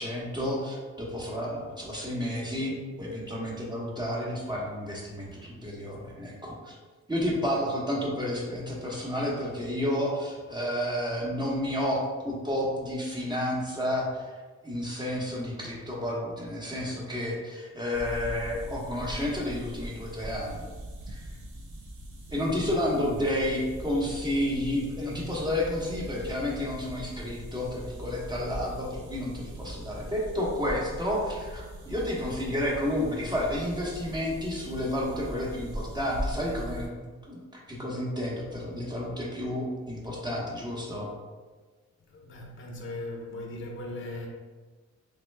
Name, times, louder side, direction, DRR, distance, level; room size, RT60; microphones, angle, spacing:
voice 1, 0.0-6.8 7.1-14.3 14.6-20.6 21.1-21.2 22.3-41.1, left 1 dB, 15° right, 0.9 m, -31 dB
sound 1, 17.9-36.9, equal, 80° right, 0.7 m, -40 dB
voice 2, 42.1-44.3, left 2 dB, 45° left, 0.6 m, -40 dB
3.1 x 2.1 x 3.2 m
cardioid pair, 75°, 29 cm